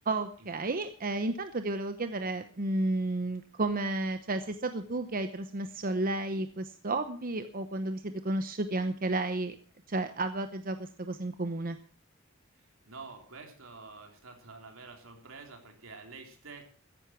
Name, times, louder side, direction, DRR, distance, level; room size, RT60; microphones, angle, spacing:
voice 1, 0.1-9.5 9.9-11.8, right 2 dB, 45° right, 9 dB, 0.9 m, -32 dB
voice 2, 12.9-16.6, right 4 dB, 80° right, 4 dB, 3.6 m, -48 dB
14.0 x 11.0 x 6.1 m, 0.42 s
head